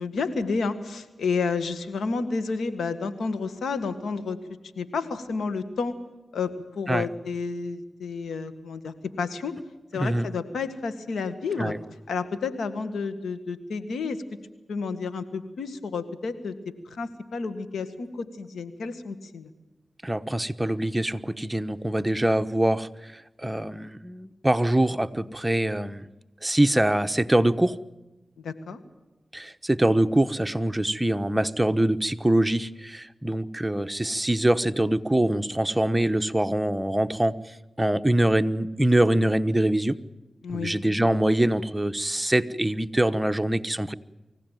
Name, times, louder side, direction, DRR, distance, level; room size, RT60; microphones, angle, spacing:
voice 1, 0.0-4.4 4.8-5.9 6.3-9.5 9.9-11.7 12.1-14.2 14.7-16.5 16.9-19.5 28.4-28.8 40.4-40.7, left 4 dB, 90° left, 11 dB, 1.9 m, -30 dB
voice 2, 10.0-10.3 11.6-11.8 20.0-26.1 26.4-27.8 29.3-37.4 37.8-40.0 40.5-43.9, right 1 dB, 15° right, 10 dB, 1.2 m, -24 dB
24.5 x 16.5 x 9.2 m, 1.1 s
cardioid pair, 40°, 0 cm